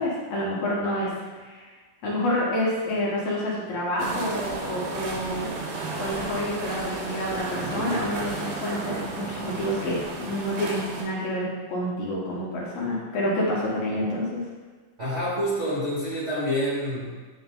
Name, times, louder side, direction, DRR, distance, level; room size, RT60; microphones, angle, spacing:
voice 1, 0.0-1.7 2.0-5.4 6.0-14.4, left 1 dB, 65° left, -5 dB, 2.3 m, -28 dB
sound 1, 4.0-11.0, right 3 dB, 85° right, 2.8 m, -33 dB
voice 2, 15.0-17.1, equal, 65° right, -10 dB, 0.6 m, -27 dB
8.9 x 3.1 x 3.7 m, 1.4 s
omnidirectional pair, 4.2 m